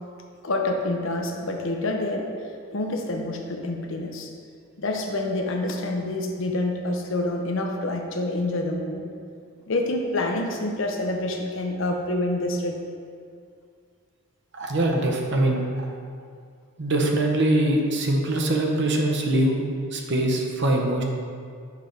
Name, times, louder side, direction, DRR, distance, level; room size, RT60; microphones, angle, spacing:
voice 1, 0.4-2.3 2.7-4.3 4.8-9.1 9.7-12.8, left 2 dB, 60° left, 3 dB, 0.6 m, -27 dB
voice 2, 14.5-15.9 16.8-19.6 19.9-21.0, right 1 dB, 55° right, 1 dB, 0.7 m, -23 dB
6.6 x 3.3 x 5.1 m, 2.2 s
head